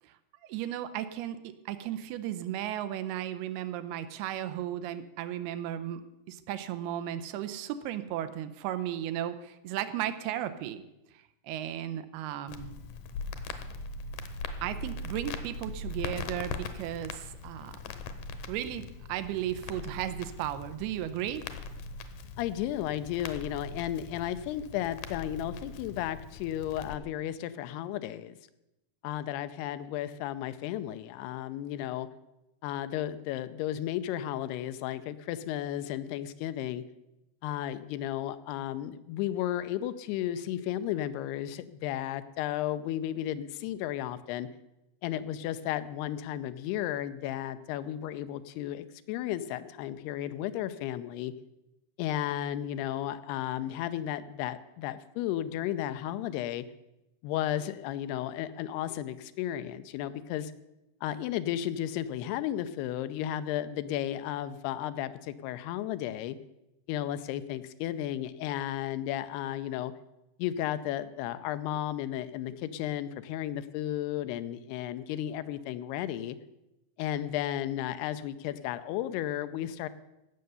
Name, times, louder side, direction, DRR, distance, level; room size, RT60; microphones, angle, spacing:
voice 1, 0.4-6.0 6.3-10.8 11.1-12.8 14.6-17.8 18.5-21.4, right 11 dB, 90° right, 11 dB, 2.7 m, -35 dB
Crackle, 12.5-27.0, left 3 dB, 70° left, 2.3 m, -41 dB
voice 2, 22.4-28.3 29.0-32.1 32.6-36.8 37.4-44.5 45.0-51.3 52.0-56.6 57.2-60.5 61.0-66.4 66.9-69.9 70.4-76.4 77.0-79.9, left 12 dB, 90° left, 12 dB, 2.7 m, -34 dB
17.0 x 6.8 x 6.8 m, 0.91 s
omnidirectional pair, 4.6 m